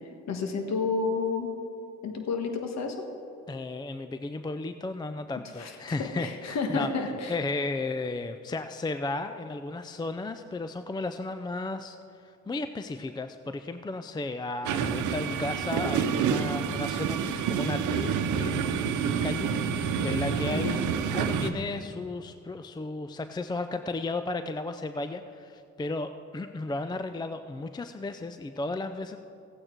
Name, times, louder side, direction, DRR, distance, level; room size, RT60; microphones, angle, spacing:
voice 1, 0.3-1.5 2.0-3.0 5.6-7.4 20.5-20.8, left 4 dB, 60° left, 4 dB, 1.4 m, -30 dB
voice 2, 3.5-12.0 12.2-29.2, left 2 dB, 15° left, 9 dB, 0.4 m, -34 dB
sound 1, 14.6-21.5, right 7 dB, 80° right, 0.9 m, -28 dB
16.0 x 8.7 x 4.5 m, 2.7 s
cardioid pair, 90°, 30 cm